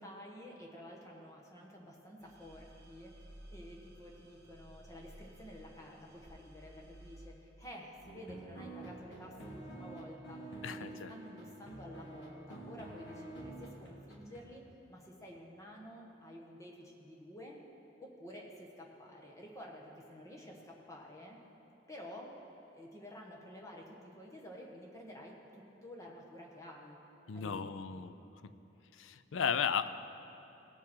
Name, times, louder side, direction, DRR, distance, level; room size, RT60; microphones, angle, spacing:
voice 1, 0.0-3.2 3.5-14.6 14.9-17.6 18.0-21.4 21.9-22.3 22.7-27.0 27.3-28.0, equal, 15° left, -2 dB, 1.3 m, -51 dB
sound 1, 2.2-7.3, right 1 dB, 35° right, 2.2 m, -55 dB
sound 2, 8.0-14.4, right 2 dB, 65° left, 1.9 m, -48 dB
voice 2, 10.6-11.1 27.3-28.1 28.4-28.5 28.9-29.9, left 7 dB, 85° left, 12 dB, 0.5 m, -35 dB
18.5 x 7.2 x 4.4 m, 2.9 s
head